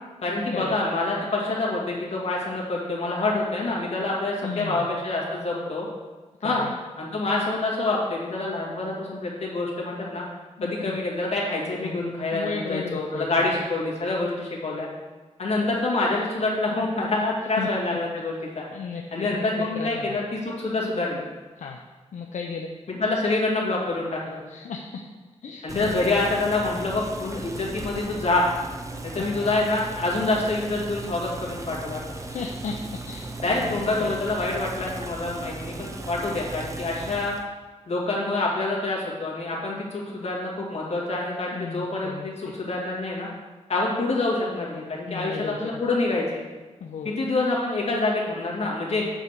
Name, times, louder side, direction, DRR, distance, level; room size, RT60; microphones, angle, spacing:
voice 1, 0.2-5.9 6.4-6.6 7.0-10.2 10.6-14.9 15.4-18.6 19.1-21.2 22.9-24.4 25.6-28.5 29.0-32.0 33.4-37.3 37.9-43.3 43.7-46.4 47.0-49.0, left 2 dB, 60° left, -4 dB, 2.4 m, -26 dB
voice 2, 4.4-4.9 6.4-6.7 10.6-11.0 11.8-13.5 17.6-17.7 18.7-19.4 19.8-20.2 21.6-21.8 22.1-22.7 24.5-25.0 25.4-26.0 29.3-29.6 32.3-34.1 41.5-42.3 45.1-45.8 46.8-47.1, left 5 dB, 80° left, 2 dB, 0.6 m, -35 dB
Boiling, 25.7-37.5, right 2 dB, 25° right, 0.7 m, -37 dB
8.8 x 4.6 x 6.7 m, 1.3 s
wide cardioid pair, 160°, 12 cm